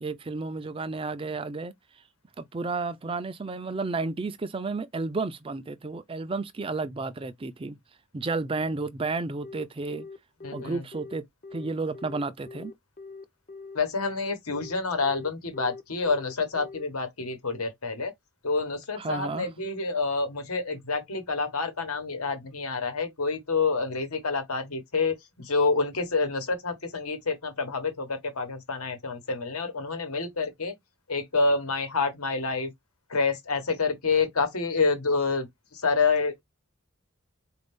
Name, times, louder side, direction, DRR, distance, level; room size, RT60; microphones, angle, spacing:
voice 1, 0.0-1.7 2.4-7.8 8.1-10.1 10.5-11.2 11.5-12.7 19.0-19.5, right 3 dB, 25° right, 0.3 m, -32 dB
Telephone, 9.4-16.8, left 4 dB, 35° left, 0.6 m, -43 dB
voice 2, 10.4-10.8 13.7-18.1 18.4-30.7 31.1-32.7 33.1-36.4, left 4 dB, 80° left, 1.2 m, -28 dB
4.2 x 2.6 x 3.5 m
head